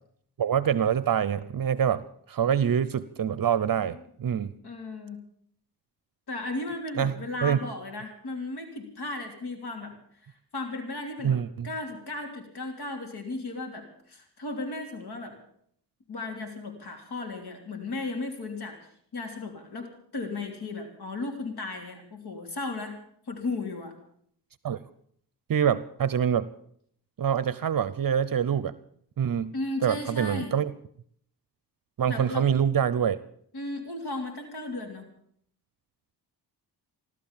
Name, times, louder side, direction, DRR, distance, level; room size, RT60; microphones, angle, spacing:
voice 1, 0.4-4.5 7.0-7.6 11.2-11.7 24.6-24.8 25.5-26.5 27.2-28.7 29.2-29.5 29.8-30.7 32.0-33.2, right 8 dB, 55° right, 16 dB, 0.7 m, -25 dB
voice 2, 4.6-5.2 6.3-9.9 10.3-11.4 11.6-15.4 16.1-18.8 19.1-23.0 23.3-23.9 29.5-30.6 32.1-32.5 33.5-35.1, left 2 dB, 65° left, 4 dB, 3.3 m, -35 dB
16.0 x 12.5 x 7.2 m, 0.64 s
cardioid pair, 100°, 42 cm